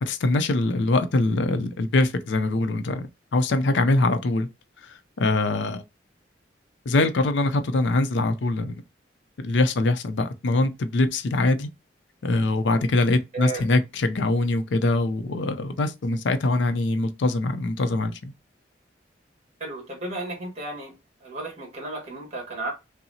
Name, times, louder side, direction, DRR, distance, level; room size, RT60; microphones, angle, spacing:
voice 1, 0.0-4.5 4.8-5.8 6.9-8.8 9.4-11.7 12.2-18.3, left 2 dB, 75° left, 0.5 m, -23 dB
voice 2, 19.6-20.9 21.2-22.7, right 2 dB, 35° right, 1.4 m, -33 dB
5.5 x 2.0 x 2.7 m
head